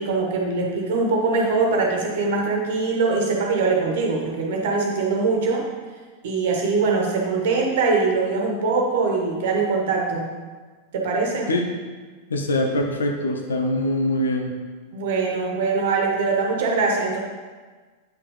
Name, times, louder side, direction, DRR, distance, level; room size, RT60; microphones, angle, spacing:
voice 1, 0.0-5.6 6.2-10.3 10.9-11.5 14.9-17.2, right 4 dB, 55° right, 0 dB, 1.4 m, -22 dB
voice 2, 12.3-14.5, left 1 dB, 70° left, 3 dB, 0.7 m, -23 dB
8.8 x 6.1 x 3.2 m, 1.4 s
figure-of-eight pair, 90°, 0 cm